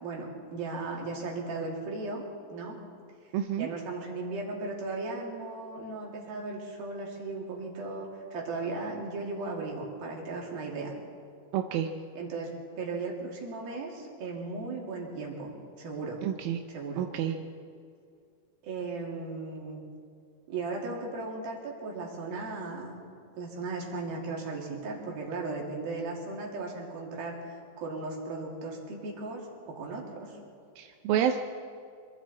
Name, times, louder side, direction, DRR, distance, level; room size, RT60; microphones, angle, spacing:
voice 1, 0.0-2.2 2.5-2.8 3.6-10.9 12.2-15.5 15.8-16.2 16.7-17.1 18.6-19.8 20.5-23.0 23.4-30.4, right 3 dB, 60° right, -1 dB, 4.5 m, -36 dB
voice 2, 3.3-3.7 11.5-11.9 16.2-16.6 17.0-17.4 30.8-31.4, right 10 dB, 75° right, 5 dB, 2.2 m, -28 dB
25.5 x 23.5 x 4.3 m, 2.3 s
omnidirectional pair, 4.8 m